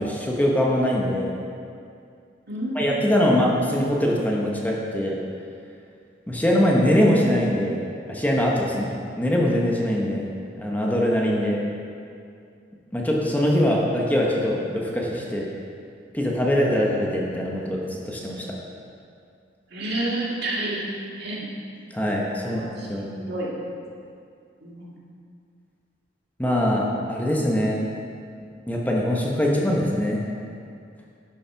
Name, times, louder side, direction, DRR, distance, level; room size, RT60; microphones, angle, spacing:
voice 1, 0.0-1.3 2.7-5.2 6.3-8.9 9.2-10.3 10.6-11.6 12.9-15.5 16.1-18.6 21.9-22.6 22.9-23.1 26.4-27.8 28.7-30.2, equal, 10° left, -3 dB, 1.0 m, -22 dB
voice 2, 2.5-3.0 19.7-20.8 21.2-21.5 22.4-23.5 24.6-24.9, right 1 dB, 60° right, -5 dB, 2.2 m, -30 dB
11.5 x 6.4 x 5.8 m, 2.4 s
head